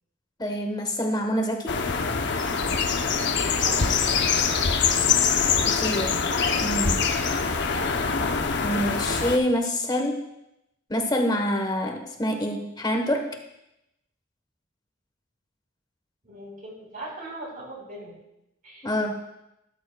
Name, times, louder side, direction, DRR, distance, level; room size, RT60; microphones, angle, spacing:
voice 1, 0.4-1.7 5.7-6.1 6.6-7.0 8.6-10.2 10.9-13.3 18.8-19.2, equal, 20° left, 4 dB, 1.2 m, -26 dB
sound 1, 1.7-9.4, left 5 dB, 60° left, 0.8 m, -24 dB
voice 2, 3.6-5.4 16.2-18.2 18.6-19.2, right 1 dB, 45° right, -2 dB, 4.3 m, -41 dB
14.0 x 13.0 x 2.3 m, 0.86 s
head